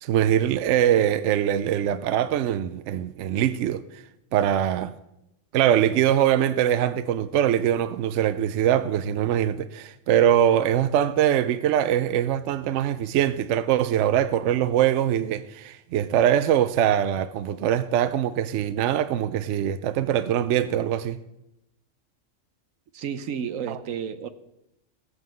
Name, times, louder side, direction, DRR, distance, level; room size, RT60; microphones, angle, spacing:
voice 1, 0.0-4.0 4.3-4.9 5.5-21.2 23.7-23.8, right 10 dB, 70° right, 0.9 m, -23 dB
voice 2, 22.9-24.3, right 7 dB, 90° right, 1.2 m, -31 dB
15.5 x 5.5 x 7.6 m
omnidirectional pair, 1.3 m